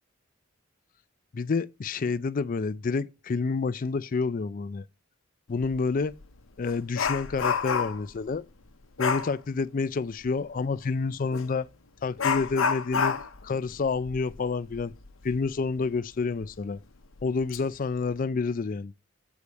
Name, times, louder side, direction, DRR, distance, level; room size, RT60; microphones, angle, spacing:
voice 1, 1.3-4.8 5.5-6.1 6.6-8.4 9.0-11.7 12.0-14.9 15.2-16.8 17.2-18.9, left 4 dB, 45° left, 0.4 m, -29 dB
Dog, 5.6-5.8 6.2-8.1 9.0-9.3 11.3-11.5 12.2-15.5 15.8-15.9 16.4-16.5 17.2-17.6 17.9-18.2, left 6 dB, 80° left, 0.8 m, -29 dB
8.3 x 4.9 x 4.1 m
head